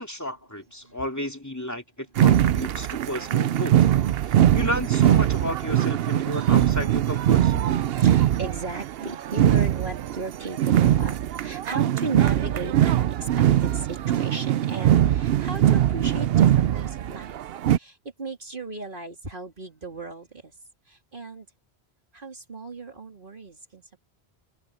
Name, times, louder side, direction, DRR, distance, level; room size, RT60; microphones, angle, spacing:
voice 1, 0.0-3.8 4.2-7.8, equal, 15° left, 2.6 m, -33 dB
sound 1, 2.2-17.8, right 11 dB, 70° right, 0.8 m, -21 dB
voice 2, 8.0-17.4 17.7-20.5 20.9-21.5 22.1-24.0, right 3 dB, 55° right, 3.5 m, -37 dB
omnidirectional pair, 1.1 m